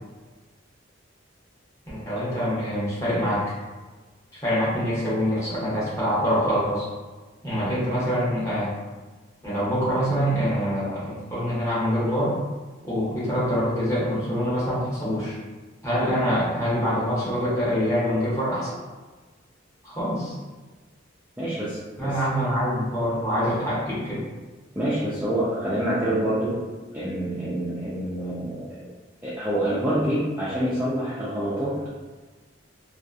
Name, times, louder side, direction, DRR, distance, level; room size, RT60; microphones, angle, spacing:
voice 1, 1.9-3.5 4.4-6.9 7.4-8.7 9.4-12.4 12.8-15.3 15.8-18.8 19.8-20.3 22.0-24.2, equal, 15° left, -10 dB, 0.9 m, -25 dB
voice 2, 21.4-22.1 24.7-26.6 26.9-28.8 29.2-31.9, right 1 dB, 10° right, -10 dB, 0.3 m, -26 dB
2.7 x 2.3 x 2.3 m, 1.3 s
head